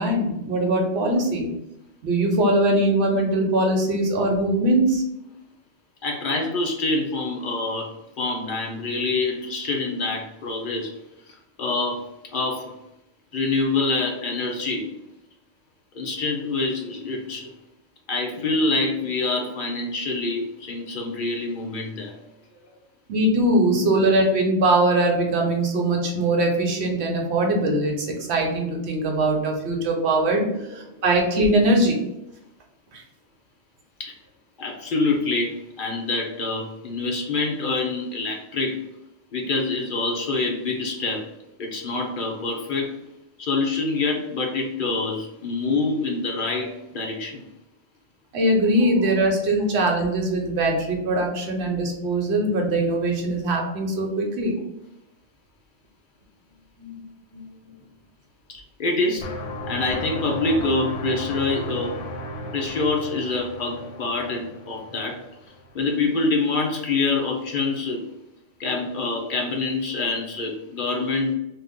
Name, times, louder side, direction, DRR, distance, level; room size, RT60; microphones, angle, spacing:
voice 1, 0.0-1.5 2.0-5.0 23.1-32.0 32.9-33.0 48.3-54.6 56.8-57.0 57.3-57.5, right 1 dB, 65° right, 1 dB, 1.0 m, -21 dB
voice 2, 6.0-10.9 11.6-12.0 12.3-12.7 13.3-14.9 15.9-17.5 18.1-22.1 23.7-23.8 30.7-30.8 34.0-34.1 34.6-38.8 39.3-41.2 41.6-42.9 43.4-47.4 49.6-49.7 58.5-59.3 59.7-61.9 62.5-65.2 65.7-68.0 68.6-71.3, left 3 dB, 60° left, 1 dB, 0.6 m, -26 dB
sound 1, 59.2-65.9, equal, 85° left, 0.9 m, -34 dB
2.5 x 2.4 x 3.5 m, 0.86 s
omnidirectional pair, 1.3 m